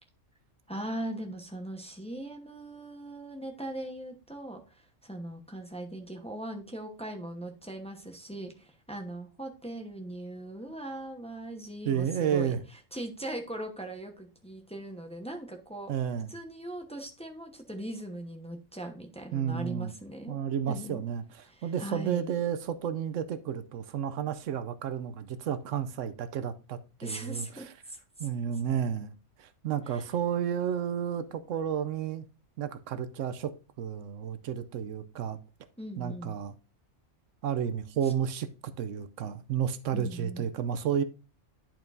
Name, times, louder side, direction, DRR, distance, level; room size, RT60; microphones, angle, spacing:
voice 1, 0.7-12.5 12.9-15.9 16.3-20.4 20.7-21.0 21.4-22.3 27.0-28.3 29.9-30.1 35.8-36.4 39.9-40.5, right 1 dB, 5° left, 0.9 m, -40 dB
voice 2, 11.9-12.6 15.9-16.3 19.3-19.9 20.3-21.2 21.6-27.7 28.2-32.3 32.6-33.5 33.8-35.4 36.0-36.5 37.4-41.0, right 8 dB, 80° right, 1.0 m, -31 dB
10.5 x 4.5 x 2.6 m
omnidirectional pair, 1.3 m